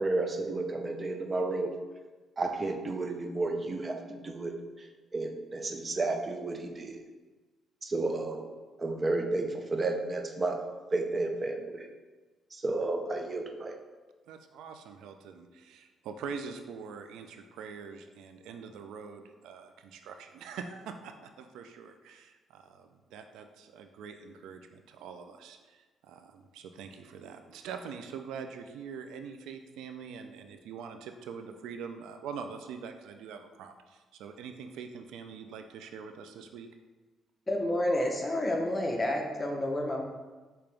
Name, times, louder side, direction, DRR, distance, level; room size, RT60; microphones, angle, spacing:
voice 1, 0.0-1.7 2.4-4.9 5.1-7.0 7.8-8.4 8.8-11.9 12.5-13.8, right 2 dB, 30° right, 4 dB, 0.5 m, -32 dB
voice 2, 14.3-36.7, right 6 dB, 90° right, 6 dB, 0.3 m, -44 dB
voice 3, 37.5-40.0, left 1 dB, 20° left, 1 dB, 0.8 m, -29 dB
5.2 x 2.9 x 3.3 m, 1.3 s
cardioid pair, 90°, 0 cm